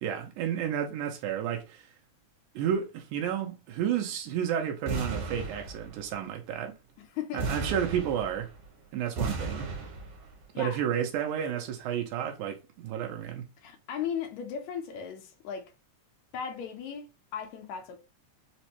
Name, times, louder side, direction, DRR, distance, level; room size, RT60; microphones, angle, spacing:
voice 1, 0.0-1.9 2.6-6.7 7.3-8.5 8.9-9.7 10.6-13.4, right 9 dB, 90° right, 2.1 m, -31 dB
sound 1, 4.9-6.1 7.4-8.6 9.2-10.3, right 3 dB, 70° right, 2.4 m, -34 dB
voice 2, 7.1-7.5 10.5-10.8 13.6-15.7 16.3-18.0, left 8 dB, 75° left, 1.8 m, -36 dB
5.1 x 2.1 x 2.9 m
omnidirectional pair, 3.5 m